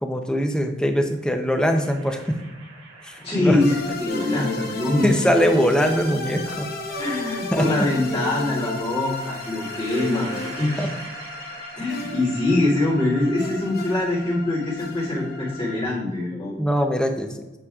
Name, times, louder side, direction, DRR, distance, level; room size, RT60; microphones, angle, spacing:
voice 1, 0.0-2.4 3.0-3.6 5.0-6.7 7.1-7.2 7.5-7.9 10.8-10.9 16.6-17.4, equal, 5° left, 5 dB, 0.6 m, -22 dB
sound 1, 1.7-4.3 5.5-6.5 8.1-14.1, right 3 dB, 70° right, 1.6 m, -43 dB
voice 2, 3.2-5.1 7.0-10.9 11.7-16.5, left 2 dB, 30° left, -11 dB, 2.3 m, -23 dB
sound 2, 3.6-15.8, left 2 dB, 50° left, 1.0 m, -33 dB
8.6 x 6.4 x 2.4 m, 1.1 s
head